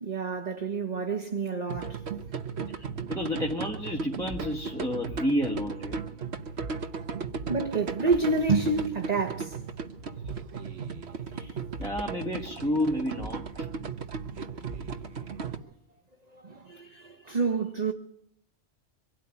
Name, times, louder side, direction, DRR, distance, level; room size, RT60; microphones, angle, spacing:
voice 1, 0.0-2.0 7.5-9.6 11.3-11.5 16.3-17.9, right 4 dB, 35° right, 1.3 m, -28 dB
sound 1, 1.7-15.6, right 5 dB, 60° right, 1.4 m, -36 dB
voice 2, 2.7-6.0 11.3-13.7, equal, 5° left, 1.5 m, -31 dB
24.5 x 12.5 x 9.6 m
omnidirectional pair, 1.2 m